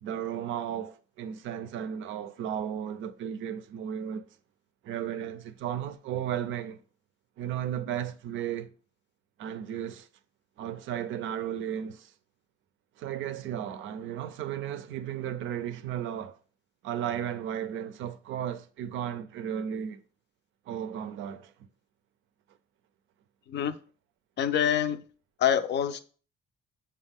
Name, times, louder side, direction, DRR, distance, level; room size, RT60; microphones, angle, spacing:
voice 1, 0.0-4.3 4.8-6.8 7.4-8.7 9.4-10.1 10.6-12.1 13.0-16.4 16.8-20.0 20.7-21.7, right 9 dB, 80° right, 0.4 m, -34 dB
voice 2, 24.4-25.0 25.4-26.0, left 9 dB, 60° left, 0.4 m, -26 dB
6.2 x 2.2 x 3.5 m
cardioid pair, 90°, 20 cm